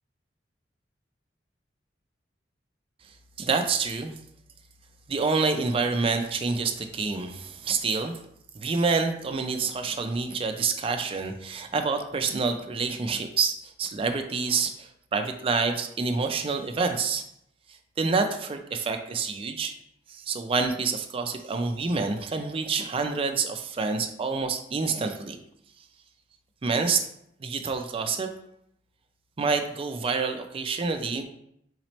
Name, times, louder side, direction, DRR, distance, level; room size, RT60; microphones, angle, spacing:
voice 1, 3.4-4.1 5.1-8.2 8.6-17.2 18.0-19.7 20.1-25.4 26.6-27.1 27.4-28.3 29.4-31.2, right 4 dB, 30° right, 6 dB, 0.4 m, -27 dB
4.0 x 2.9 x 3.0 m, 0.75 s
head